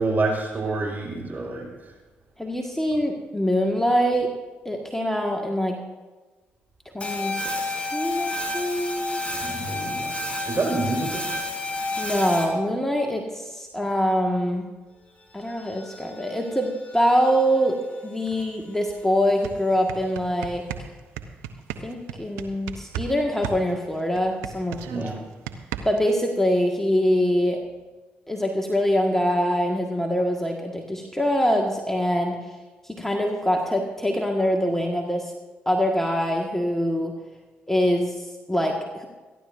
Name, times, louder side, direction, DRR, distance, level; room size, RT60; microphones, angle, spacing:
voice 1, 0.0-1.9 9.3-10.2 10.5-11.3 24.8-25.2, right 3 dB, 35° right, -1 dB, 5.3 m, -27 dB
voice 2, 2.4-4.3 4.6-5.8 6.9-9.2 12.0-14.7 15.3-20.6 21.8-25.2 25.8-27.6 28.3-32.4 32.9-35.3 35.6-37.1 37.7-39.1, equal, 5° left, 1 dB, 1.8 m, -24 dB
sound 1, 7.0-12.5 15.5-17.7, left 2 dB, 25° left, 3.7 m, -31 dB
sound 2, 18.9-19.0 19.3-23.1 23.4-26.1, right 9 dB, 80° right, 0.8 m, -35 dB
27.5 x 11.5 x 2.7 m, 1.2 s
hypercardioid pair, 40°, 5 cm